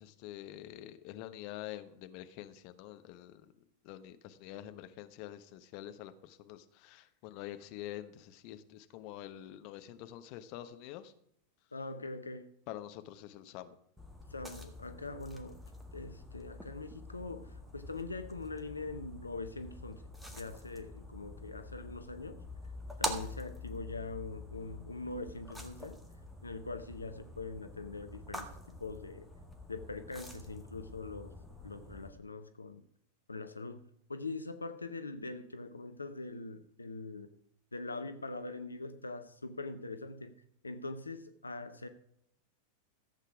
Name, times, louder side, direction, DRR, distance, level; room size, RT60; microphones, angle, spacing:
voice 1, 0.0-3.5 3.8-11.1 12.7-13.8, left 13 dB, 45° left, 1.0 m, -46 dB
voice 2, 11.7-12.5 14.3-15.6 15.9-20.0 20.3-22.4 23.0-26.0 26.4-29.3 29.7-31.3 31.6-32.8 33.3-37.3 37.7-40.3 40.6-41.9, left 3 dB, 80° left, 0.7 m, -43 dB
sound 1, 14.0-32.1, left 1 dB, ahead, 1.7 m, -46 dB
14.5 x 8.1 x 4.8 m
figure-of-eight pair, 90°, 0 cm